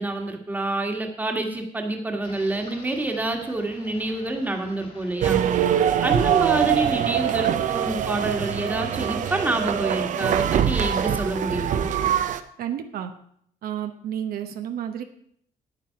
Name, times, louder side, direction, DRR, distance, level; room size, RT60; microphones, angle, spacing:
voice 1, 0.0-5.4 6.0-11.9, right 2 dB, 10° right, 3 dB, 1.5 m, -27 dB
sound 1, 2.2-9.8, left 4 dB, 40° left, 2.4 m, -48 dB
sound 2, 5.2-12.4, right 9 dB, 55° right, 0.7 m, -23 dB
voice 2, 12.6-13.1 13.6-15.0, right 10 dB, 70° right, 6 dB, 1.0 m, -31 dB
9.2 x 9.2 x 5.7 m, 0.66 s
cardioid pair, 145°, 16 cm